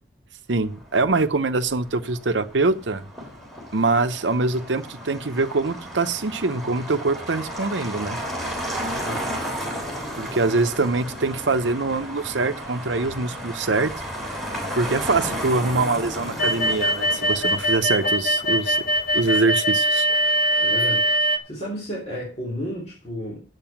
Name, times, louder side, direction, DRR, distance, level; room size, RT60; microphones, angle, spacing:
voice 1, 0.5-3.0 3.7-8.2 10.2-13.9 14.8-18.8 19.1-20.1, right 3 dB, 90° right, 10 dB, 0.8 m, -23 dB
Motor vehicle (road), 0.6-19.4, equal, ahead, 3.2 m, -34 dB
voice 2, 8.9-9.3 19.3-19.5 20.6-21.1 21.4-23.4, equal, 35° left, -6 dB, 3.6 m, -32 dB
sound 1, 16.4-21.4, equal, 50° left, 1.5 m, -21 dB
9.0 x 8.2 x 5.9 m, 0.37 s
head